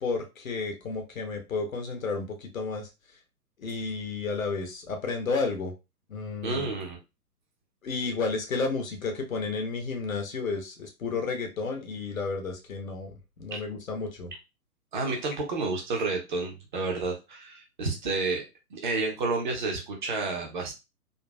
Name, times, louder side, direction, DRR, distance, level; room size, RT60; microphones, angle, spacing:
voice 1, 0.0-2.9 3.6-5.7 6.1-6.8 7.8-14.3, left 4 dB, 60° left, 3 dB, 1.0 m, -32 dB
voice 2, 6.4-7.0 13.5-13.6 14.9-18.4 18.7-20.7, right 3 dB, 30° right, 1 dB, 0.7 m, -30 dB
3.8 x 2.3 x 2.2 m, 0.25 s
figure-of-eight pair, 125°, 46 cm